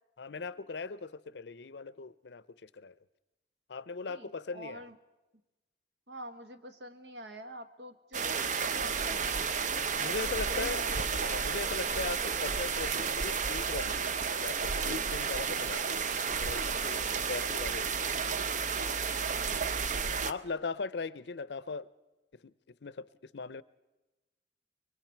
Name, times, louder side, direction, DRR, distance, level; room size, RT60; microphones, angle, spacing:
voice 1, 0.2-2.9 3.7-4.8 10.0-14.1 14.4-16.0 16.4-18.1 19.9-21.9 22.4-22.5 22.8-23.6, left 4 dB, 75° left, 18 dB, 0.6 m, -39 dB
voice 2, 4.1-5.0 6.1-9.5 10.2-10.9 16.4-17.5 19.4-19.8, equal, 75° right, 8 dB, 1.6 m, -47 dB
sound 1, 8.1-20.3, right 5 dB, 45° right, 0.6 m, -32 dB
25.5 x 23.0 x 4.5 m, 1.0 s
head